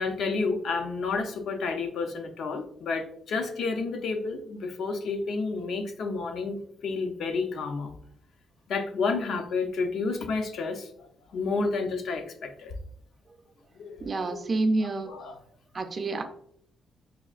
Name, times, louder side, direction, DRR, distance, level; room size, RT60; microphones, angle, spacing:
voice 1, 0.0-7.9 8.7-10.9 11.3-12.7 13.8-14.4 14.8-15.4, left 4 dB, 70° left, 5 dB, 0.5 m, -30 dB
voice 2, 14.0-15.1 15.7-16.2, right 2 dB, 35° right, 8 dB, 0.4 m, -28 dB
4.6 x 2.4 x 2.3 m, 0.66 s
cardioid pair, 125°, 0 cm